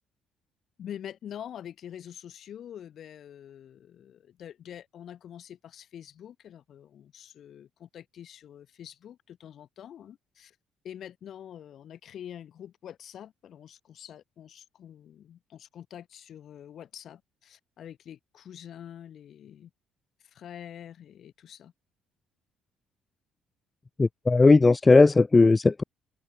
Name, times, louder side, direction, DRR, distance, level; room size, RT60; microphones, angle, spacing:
voice 1, 0.8-10.6 10.8-19.7 20.2-21.7, left 10 dB, 60° left, 2.6 m, -45 dB
voice 2, 24.0-25.8, left 3 dB, 25° left, 0.4 m, -18 dB
supercardioid pair, 60°, 0 cm